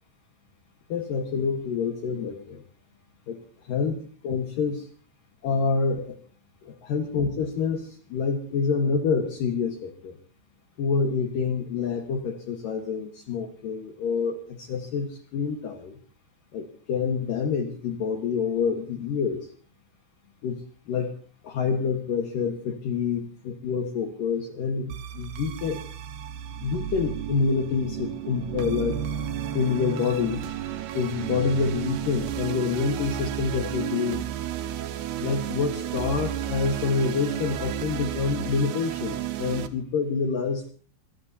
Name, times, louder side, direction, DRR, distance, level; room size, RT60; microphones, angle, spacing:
voice 1, 0.9-2.6 3.3-3.4 3.7-4.9 5.4-6.2 6.6-10.2 10.8-16.0 16.5-19.5 20.4-20.6 20.9-21.1 21.4-25.8 26.6-29.0 29.5-30.4 30.9-34.2 35.2-40.7, left 5 dB, 65° left, 4 dB, 2.2 m, -27 dB
sound 1, 24.9-39.7, right 10 dB, 70° right, 2.7 m, -33 dB
24.5 x 20.0 x 2.7 m, 0.40 s
omnidirectional pair, 5.7 m